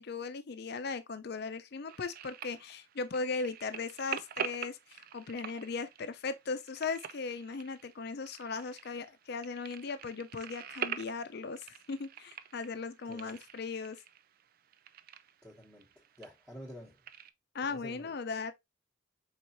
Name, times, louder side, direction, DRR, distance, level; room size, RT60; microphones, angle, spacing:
voice 1, 0.0-14.0 17.5-18.5, left 4 dB, 60° left, 0.6 m, -38 dB
sound 1, 1.9-17.3, right 8 dB, 50° right, 0.4 m, -45 dB
voice 2, 13.0-13.4 15.4-17.0 17.7-18.2, equal, 5° right, 1.2 m, -50 dB
4.7 x 4.1 x 2.6 m
head